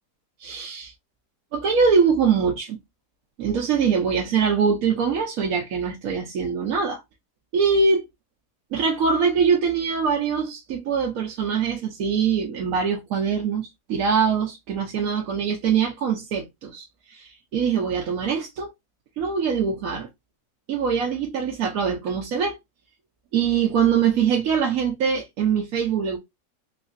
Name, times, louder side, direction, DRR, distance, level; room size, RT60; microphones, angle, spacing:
voice 1, 0.4-0.9 1.5-2.8 3.4-7.0 7.5-8.0 8.7-18.7 19.2-20.1 20.7-22.5 23.3-26.2, right 6 dB, 65° right, 1.1 m, -23 dB
4.0 x 2.7 x 2.5 m
omnidirectional pair, 1.8 m